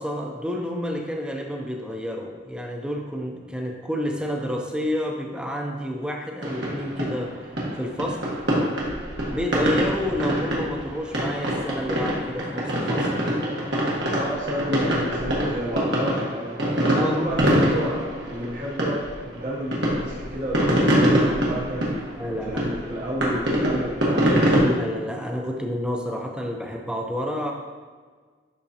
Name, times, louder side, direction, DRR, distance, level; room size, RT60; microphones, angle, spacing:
voice 1, 0.0-7.4 7.7-8.3 9.3-13.1 16.9-17.2 22.2-22.7 24.6-27.5, equal, 5° right, 1 dB, 0.6 m, -29 dB
sound 1, 6.4-24.6, equal, 75° right, 1.5 m, -24 dB
voice 2, 14.1-22.1 22.5-24.3 24.5-24.7, equal, 45° right, -5 dB, 0.9 m, -30 dB
11.0 x 3.6 x 2.8 m, 1.5 s
head